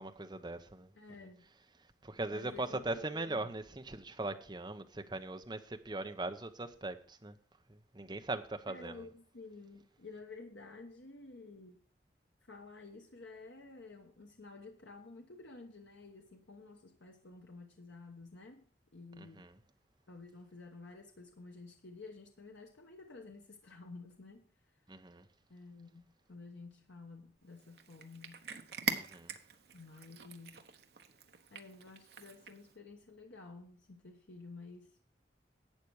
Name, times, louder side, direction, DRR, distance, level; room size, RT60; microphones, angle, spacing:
voice 1, 0.0-0.9 2.0-7.3 7.7-9.1 19.2-19.5 24.9-25.2 28.9-29.3, right 2 dB, 25° right, 0.8 m, -40 dB
voice 2, 0.9-1.5 2.3-3.5 8.7-11.9 12.5-18.6 18.9-19.5 20.1-24.5 25.5-28.5 29.7-30.7 31.5-35.0, left 3 dB, 85° left, 1.1 m, -52 dB
Cat, 27.5-32.8, right 5 dB, 60° right, 1.0 m, -43 dB
11.5 x 8.4 x 4.7 m
head